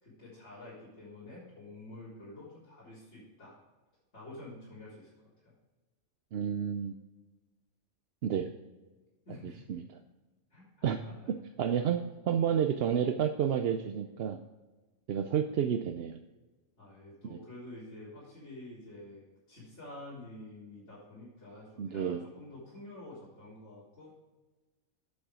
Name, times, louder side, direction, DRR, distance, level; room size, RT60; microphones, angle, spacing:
voice 1, 0.0-3.6 4.1-5.1 5.4-5.5 9.3-9.8 10.5-11.3 16.8-24.2, left 2 dB, 55° left, -11 dB, 4.2 m, -49 dB
voice 2, 6.3-6.9 8.2-8.5 9.7-9.8 10.8-11.0 11.6-14.4 15.1-16.2 17.3-17.4 21.8-22.2, right 8 dB, 60° right, 7 dB, 0.7 m, -30 dB
9.7 x 6.9 x 4.9 m, 1.2 s
omnidirectional pair, 1.4 m